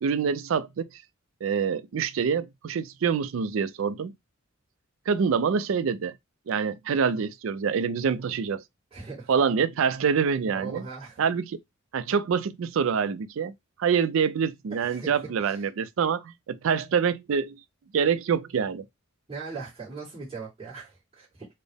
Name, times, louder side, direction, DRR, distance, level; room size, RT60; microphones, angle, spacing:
voice 1, 0.0-1.0 1.4-4.1 5.1-6.2 6.5-8.6 9.3-10.8 11.2-11.6 11.9-13.5 13.8-17.6 17.9-18.8, right 6 dB, 70° right, 0.4 m, -26 dB
voice 2, 8.9-9.3 10.5-11.2 14.7-15.1 15.4-15.6 19.3-21.5, right 4 dB, 30° right, 1.6 m, -39 dB
4.1 x 2.0 x 3.4 m
head